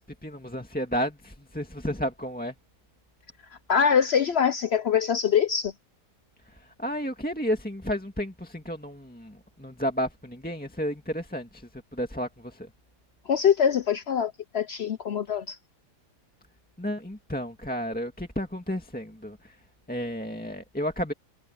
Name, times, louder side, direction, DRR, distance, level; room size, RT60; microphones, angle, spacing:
voice 1, 0.0-2.5 6.5-12.7 16.8-19.6 19.9-21.1, equal, 5° left, 1.8 m, -32 dB
voice 2, 3.7-5.7 13.3-15.6, left 7 dB, 70° left, 0.6 m, -23 dB
omnidirectional pair, 1.8 m